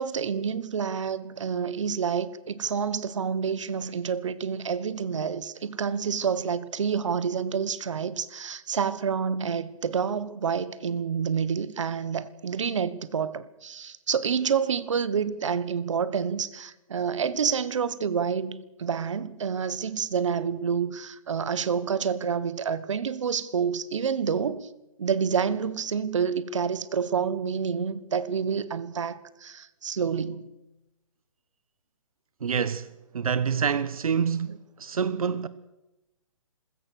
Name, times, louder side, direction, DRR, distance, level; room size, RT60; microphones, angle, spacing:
voice 1, 0.0-24.7 25.0-30.5, right 6 dB, 60° right, 1.4 m, -28 dB
voice 2, 32.4-35.5, right 6 dB, 85° right, 1.1 m, -27 dB
27.0 x 16.5 x 6.5 m
hypercardioid pair, 180°, 18 cm